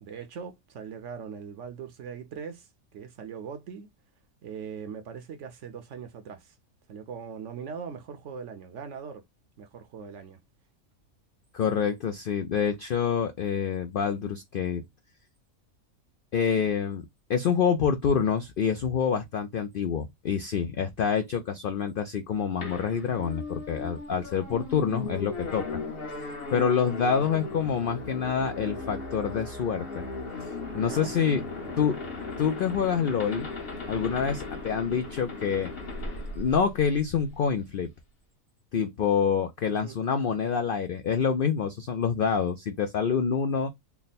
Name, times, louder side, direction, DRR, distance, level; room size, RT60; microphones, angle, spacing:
voice 1, 0.0-3.9 4.4-6.6 6.9-9.2 9.6-10.4 27.2-27.3 30.9-31.9 39.7-40.0, right 6 dB, 65° right, 0.9 m, -41 dB
voice 2, 11.5-14.8 16.3-25.8 26.5-30.1 30.7-31.4 31.8-32.0 32.4-33.5 33.9-35.7 36.4-37.9 38.7-43.7, left 7 dB, 70° left, 0.5 m, -27 dB
sound 1, 22.6-37.3, left 3 dB, 45° left, 1.2 m, -37 dB
3.4 x 2.1 x 4.0 m
omnidirectional pair, 1.5 m